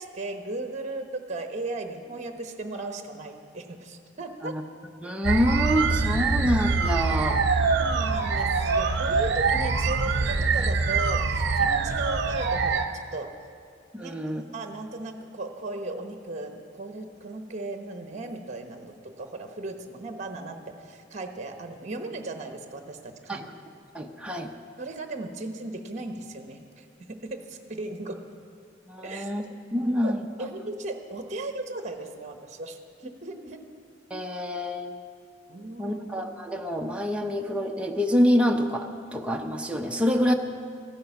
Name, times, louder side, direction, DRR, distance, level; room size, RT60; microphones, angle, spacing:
voice 1, 0.0-4.5 7.7-13.3 14.0-14.2 14.5-16.5 16.8-23.5 24.8-28.2 29.0-29.3 29.8-33.6 35.5-36.0, right 2 dB, 40° right, 6 dB, 1.0 m, -36 dB
voice 2, 5.0-7.4 13.9-14.4 23.3-23.5 23.9-24.5 28.9-29.5 29.7-30.2 34.1-35.0 35.8-40.3, equal, 5° right, 2 dB, 0.7 m, -26 dB
sound 1, 5.2-12.9, right 4 dB, 60° right, 0.8 m, -24 dB
15.0 x 9.5 x 5.9 m, 2.3 s
head